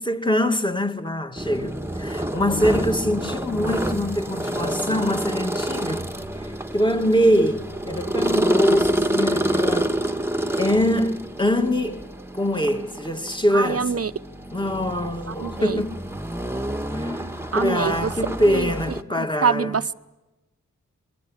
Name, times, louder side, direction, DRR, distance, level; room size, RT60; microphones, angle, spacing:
voice 1, 0.0-10.0 10.6-14.1 14.5-16.0 16.9-17.2 17.5-19.9, equal, 15° left, 2.2 m, -24 dB
sound 1, 1.4-19.0, right 1 dB, 5° right, 1.5 m, -28 dB
voice 2, 13.5-14.1 15.4-15.8 17.5-18.1 18.5-18.6 19.4-19.9, right 6 dB, 50° right, 0.9 m, -24 dB
28.0 x 22.0 x 7.3 m
wide cardioid pair, 65°, 32 cm